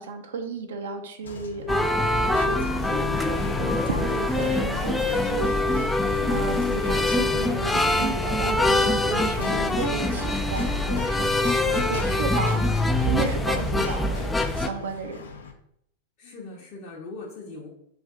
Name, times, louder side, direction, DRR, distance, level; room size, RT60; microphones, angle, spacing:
voice 1, 0.0-5.5 6.3-11.2 11.7-12.6 13.0-15.3, right 4 dB, 60° right, 5 dB, 0.6 m, -33 dB
sound 1, 1.2-15.5, left 4 dB, 70° left, 0.6 m, -40 dB
sound 2, 1.7-14.7, left 2 dB, 5° left, 0.3 m, -24 dB
voice 2, 6.2-7.1 12.3-12.8 16.2-17.7, left 4 dB, 40° left, -5 dB, 0.8 m, -40 dB
3.4 x 2.6 x 3.6 m, 0.72 s
figure-of-eight pair, 90°, 0 cm